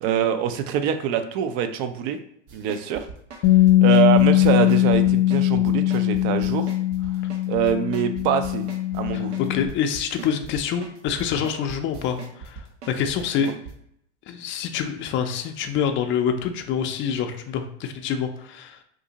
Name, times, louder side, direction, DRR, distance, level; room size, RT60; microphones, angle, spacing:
voice 1, 0.0-2.2 2.5-3.1 3.8-6.7 7.5-8.6 8.9-9.3 13.4-13.5, right 9 dB, 50° right, 9 dB, 0.5 m, -24 dB
sound 1, 2.5-13.7, right 5 dB, 75° right, 0.9 m, -40 dB
Bass guitar, 3.4-9.7, left 14 dB, 85° left, 0.5 m, -20 dB
voice 2, 9.1-13.5 14.3-18.8, left 7 dB, 35° left, 6 dB, 0.5 m, -26 dB
2.7 x 2.6 x 3.9 m, 0.71 s
supercardioid pair, 120°, 36 cm